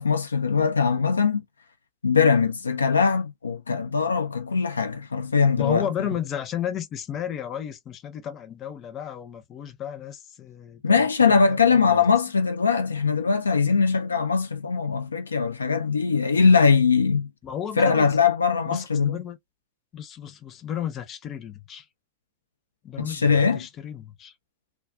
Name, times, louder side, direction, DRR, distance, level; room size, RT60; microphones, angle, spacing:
voice 1, 0.0-1.4 2.0-5.9 10.8-17.3 17.8-19.2 23.0-23.6, left 5 dB, 75° left, 0.3 m, -21 dB
voice 2, 5.6-12.0 17.4-18.1 18.6-19.4 19.9-21.9 22.8-24.3, left 9 dB, 30° left, 0.7 m, -33 dB
2.3 x 2.3 x 2.3 m
figure-of-eight pair, 90°, 0 cm